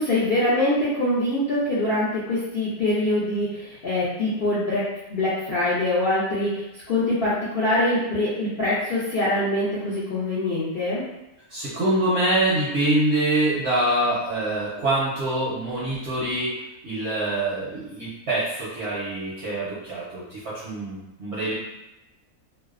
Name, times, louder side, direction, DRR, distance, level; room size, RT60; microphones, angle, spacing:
voice 1, 0.0-11.0, left 1 dB, 65° left, -10 dB, 0.5 m, -24 dB
voice 2, 11.5-16.6 16.8-21.5, right 1 dB, 60° right, -8 dB, 0.7 m, -25 dB
2.6 x 2.0 x 2.4 m, 0.96 s
omnidirectional pair, 1.6 m